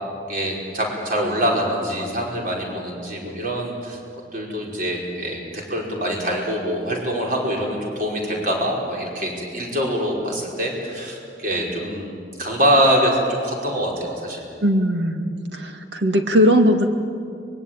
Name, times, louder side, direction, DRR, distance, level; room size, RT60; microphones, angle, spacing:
voice 1, 0.3-4.0 4.3-14.5, equal, 50° right, -1 dB, 5.1 m, -24 dB
voice 2, 14.6-15.2 15.5-16.9, equal, 80° right, 5 dB, 2.1 m, -18 dB
24.0 x 22.0 x 9.0 m, 2.4 s
head